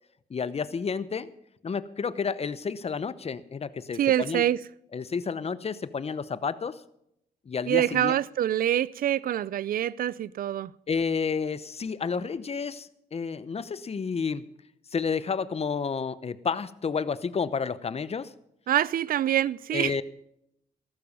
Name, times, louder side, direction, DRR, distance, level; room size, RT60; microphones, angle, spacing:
voice 1, 0.3-1.3 1.6-4.4 4.9-6.8 7.5-8.1 10.9-14.4 14.9-18.3 19.7-20.0, left 5 dB, 40° left, 0.8 m, -30 dB
voice 2, 4.0-4.6 7.7-10.7 18.7-20.0, right 11 dB, 65° right, 0.4 m, -25 dB
14.0 x 12.0 x 5.5 m
cardioid pair, 65°, 16 cm